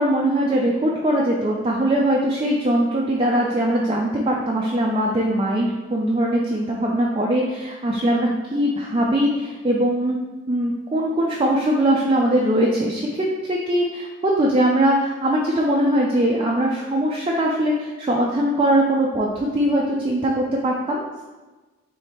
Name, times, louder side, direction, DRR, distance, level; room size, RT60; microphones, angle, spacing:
voice 1, 0.0-10.2 10.5-21.0, right 1 dB, 25° right, -3 dB, 0.4 m, -21 dB
3.5 x 3.4 x 4.2 m, 1.2 s
head